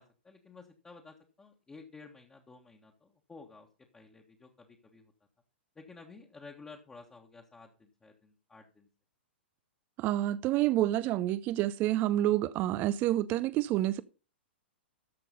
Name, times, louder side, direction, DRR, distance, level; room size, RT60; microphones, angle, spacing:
voice 1, 0.0-3.7 3.9-5.1 5.7-8.9, left 4 dB, 10° left, 1.4 m, -53 dB
voice 2, 10.0-14.0, right 14 dB, 30° right, 0.4 m, -28 dB
13.5 x 5.3 x 5.4 m
figure-of-eight pair, 105°, 6 cm